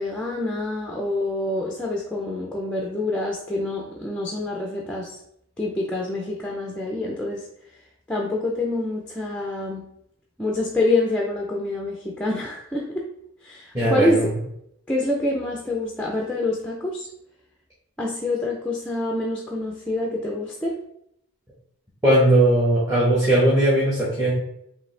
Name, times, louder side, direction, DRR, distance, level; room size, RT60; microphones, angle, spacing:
voice 1, 0.0-5.2 5.6-7.5 8.1-9.9 10.4-13.1 13.4-14.3 14.9-17.1 18.0-20.8, left 2 dB, 5° left, -1 dB, 0.4 m, -26 dB
voice 2, 13.7-14.2 22.0-24.3, right 1 dB, 15° right, -9 dB, 1.1 m, -18 dB
5.1 x 2.7 x 3.2 m, 0.75 s
head